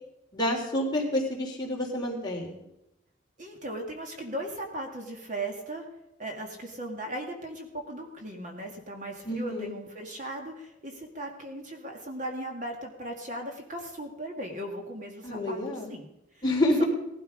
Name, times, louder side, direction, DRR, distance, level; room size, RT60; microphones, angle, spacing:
voice 1, 0.3-2.5 9.3-9.7 15.2-15.9 16.4-16.8, left 1 dB, 20° left, -2 dB, 3.4 m, -28 dB
voice 2, 3.4-5.9 6.2-16.1 16.3-16.4, right 1 dB, 40° right, 2 dB, 1.9 m, -37 dB
17.5 x 12.5 x 5.2 m, 0.89 s
head